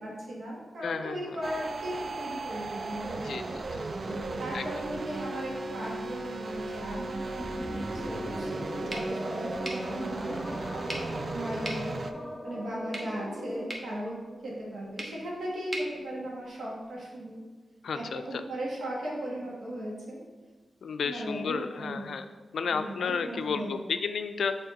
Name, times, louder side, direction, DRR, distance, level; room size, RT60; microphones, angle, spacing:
voice 1, 0.0-3.4 4.0-7.5 7.8-12.0 12.4-14.2 14.4-17.4 17.9-20.2 21.0-22.1 22.6-23.8, right 1 dB, 80° right, -4 dB, 1.7 m, -37 dB
voice 2, 0.8-1.4 3.2-3.9 4.5-4.8 11.6-11.8 17.8-18.4 20.8-22.3 22.5-24.6, left 5 dB, 85° left, 9 dB, 0.3 m, -33 dB
sound 1, 1.4-12.1, right 3 dB, 50° right, 0.4 m, -36 dB
sound 2, 7.4-13.9, equal, ahead, 1.0 m, -39 dB
sound 3, 8.9-16.9, right 1 dB, 20° right, 1.2 m, -44 dB
6.9 x 3.4 x 4.0 m, 1.3 s
cardioid pair, 75°, 0 cm